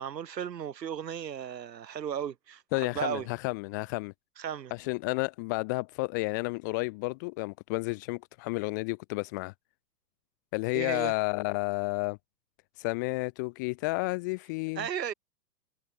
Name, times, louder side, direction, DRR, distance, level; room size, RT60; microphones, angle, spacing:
voice 1, 0.0-3.3 4.4-4.7 10.7-11.1 14.8-15.1, right 9 dB, 80° right, 4.5 m, -35 dB
voice 2, 2.7-4.1 4.7-9.5 10.5-12.2 12.8-14.9, left 27 dB, 15° left, 0.3 m, -31 dB
hypercardioid pair, 120°, 49 cm